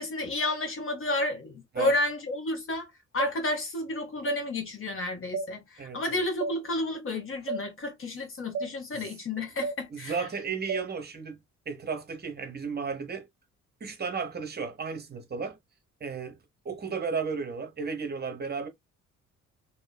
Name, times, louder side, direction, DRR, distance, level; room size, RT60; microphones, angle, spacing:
voice 1, 0.0-10.3, left 2 dB, 45° left, 1.0 m, -31 dB
sound 1, 3.2-3.3 4.3-4.4 5.3-5.5 6.4-6.6 7.5-7.6 8.5-8.7 9.6-9.8 10.7-10.8, right 4 dB, 50° right, 0.5 m, -31 dB
voice 2, 5.8-6.2 8.9-9.0 9.9-11.4 11.7-13.3 13.8-15.6 16.0-16.4 16.6-18.7, right 5 dB, 35° right, 1.0 m, -34 dB
2.8 x 2.5 x 2.2 m
cardioid pair, 90°, 30 cm